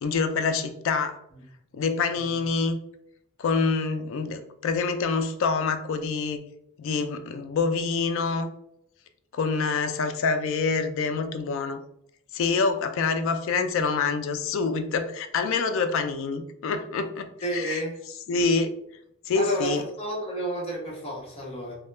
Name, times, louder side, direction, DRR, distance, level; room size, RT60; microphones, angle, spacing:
voice 1, 0.0-1.2 1.7-2.8 3.4-6.4 6.8-8.5 9.3-11.8 12.3-17.3 17.5-17.8 18.3-18.7 19.3-19.8, left 4 dB, 65° left, 8 dB, 0.3 m, -26 dB
voice 2, 17.4-18.0 19.3-19.7 20.0-21.7, equal, 30° left, -3 dB, 0.8 m, -31 dB
2.2 x 2.1 x 3.0 m, 0.74 s
head